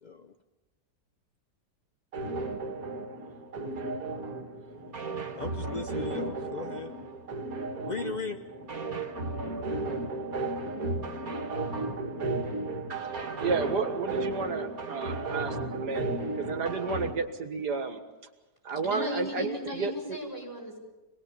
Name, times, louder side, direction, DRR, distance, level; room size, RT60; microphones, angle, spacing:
voice 1, 0.0-0.3 3.6-4.0 5.4-7.0 7.8-8.4, left 5 dB, 40° left, 7 dB, 0.6 m, -38 dB
sound 1, 2.1-17.1, right 2 dB, 55° right, 2.1 m, -34 dB
voice 2, 13.4-16.1 16.4-18.0 18.6-19.9, right 5 dB, 75° right, 7 dB, 2.1 m, -31 dB
voice 3, 18.8-20.8, left 2 dB, 10° left, -1 dB, 7.1 m, -36 dB
26.0 x 19.5 x 7.0 m, 1.1 s
omnidirectional pair, 1.8 m